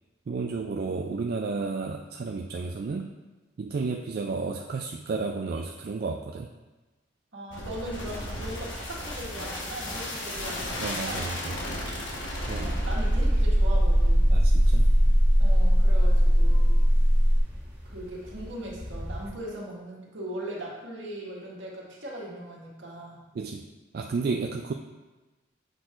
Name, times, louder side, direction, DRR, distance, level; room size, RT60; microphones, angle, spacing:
voice 1, 0.3-3.1 3.6-6.5 10.8-11.6 12.4-12.8 14.3-14.9 23.3-23.6 23.9-24.7, right 4 dB, 50° right, 3 dB, 0.3 m, -32 dB
voice 2, 7.3-11.3 12.5-14.4 15.4-16.8 17.8-23.2, right 1 dB, 75° right, -4 dB, 1.7 m, -39 dB
sound 1, 7.5-17.4, equal, 85° left, 1.2 m, -23 dB
sound 2, 10.3-19.3, equal, 10° right, 1.2 m, -43 dB
7.9 x 6.1 x 2.5 m, 1.2 s
head